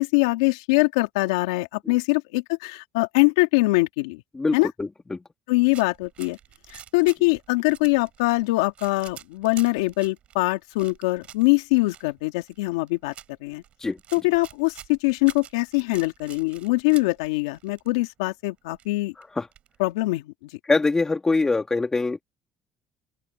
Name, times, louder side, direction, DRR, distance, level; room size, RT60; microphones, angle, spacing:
voice 1, 0.0-4.2 4.5-4.7 5.5-6.4 6.7-13.1 13.4-13.6 14.1-19.1 19.8-20.5, left 23 dB, 85° left, 2.3 m, -23 dB
voice 2, 4.3-5.2 13.8-14.0 19.4-19.5 20.7-22.2, left 3 dB, 20° left, 3.5 m, -23 dB
sound 1, 5.6-18.0 18.3-18.4 18.6-19.9, right 10 dB, 55° right, 7.5 m, -47 dB
open air
hypercardioid pair, 65°, 2 cm